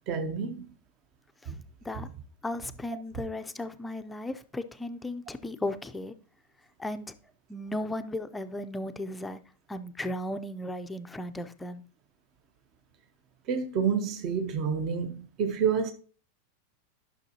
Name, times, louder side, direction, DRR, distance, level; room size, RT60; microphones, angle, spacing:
voice 1, 0.1-0.7 1.5-1.6 13.5-15.9, right 6 dB, 35° right, 0.7 m, -29 dB
voice 2, 2.4-6.1 6.8-7.1 7.5-9.4 9.7-11.8, left 1 dB, 5° left, 0.5 m, -35 dB
12.0 x 6.1 x 2.8 m
supercardioid pair, 160°, 0 cm